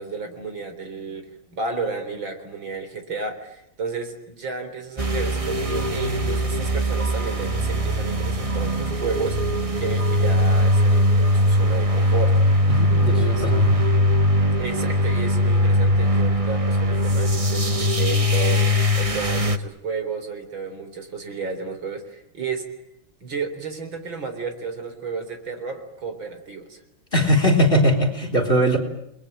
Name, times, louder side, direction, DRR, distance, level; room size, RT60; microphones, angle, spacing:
voice 1, 0.0-12.3 13.1-13.5 14.6-22.6 23.2-26.8, right 4 dB, 70° right, 8 dB, 4.5 m, -32 dB
sound 1, 5.0-19.6, equal, 20° right, 1.2 m, -20 dB
voice 2, 12.7-13.7 27.1-28.8, equal, 25° left, 3 dB, 4.4 m, -20 dB
30.0 x 21.5 x 9.0 m, 0.80 s
omnidirectional pair, 2.2 m